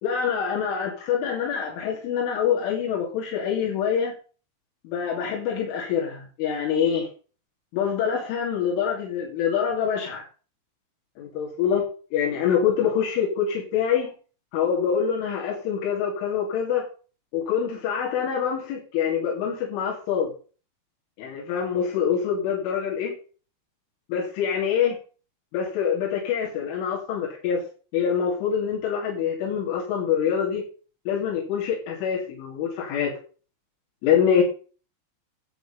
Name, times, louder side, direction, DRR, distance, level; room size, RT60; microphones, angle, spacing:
voice 1, 0.0-4.1 4.9-7.1 7.7-10.3 11.2-14.1 14.5-16.9 17.3-20.3 21.2-23.2 24.1-25.0 25.5-27.6 27.9-30.6 31.1-33.1 34.0-34.4, left 7 dB, 85° left, -3 dB, 5.2 m, -25 dB
11.5 x 9.0 x 5.6 m, 0.39 s
omnidirectional pair, 5.4 m